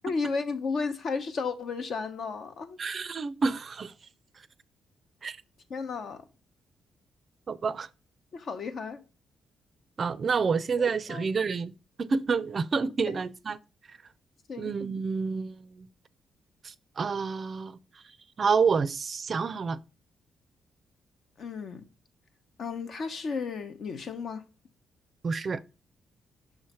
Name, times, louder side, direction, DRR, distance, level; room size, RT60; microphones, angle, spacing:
voice 1, 0.0-2.8 5.7-6.3 8.3-9.0 10.8-11.3 13.1-13.2 14.5-14.7 21.4-21.9 22.6-24.4, left 4 dB, 55° left, 0.9 m, -33 dB
voice 2, 2.8-3.9 5.2-5.4 7.5-7.9 10.0-13.6 13.9-14.0 14.6-15.9 16.6-18.0 18.4-19.8 25.2-25.6, right 5 dB, 40° right, 0.4 m, -29 dB
6.1 x 3.2 x 5.5 m
cardioid pair, 115°, 0 cm